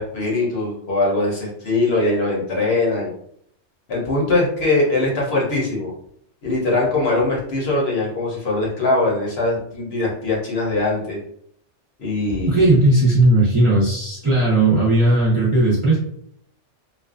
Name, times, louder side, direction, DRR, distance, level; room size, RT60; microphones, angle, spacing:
voice 1, 0.0-3.1 3.9-5.9 6.4-11.2 12.0-12.7, left 2 dB, 60° left, -3 dB, 1.0 m, -21 dB
voice 2, 12.4-16.0, right 2 dB, 35° right, -7 dB, 0.6 m, -16 dB
2.5 x 2.2 x 2.4 m, 0.68 s
omnidirectional pair, 1.2 m